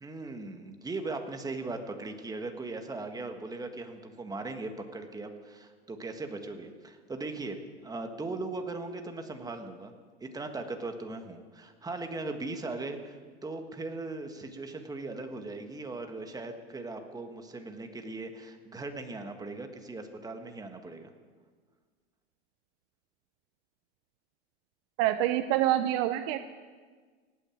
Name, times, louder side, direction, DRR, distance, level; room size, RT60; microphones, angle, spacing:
voice 1, 0.0-7.6 7.8-9.9 10.2-21.1, right 3 dB, 10° right, 5 dB, 1.6 m, -39 dB
voice 2, 25.0-26.4, right 13 dB, 45° right, 9 dB, 0.8 m, -26 dB
18.0 x 9.3 x 8.6 m, 1.5 s
hypercardioid pair, 125°, 35 cm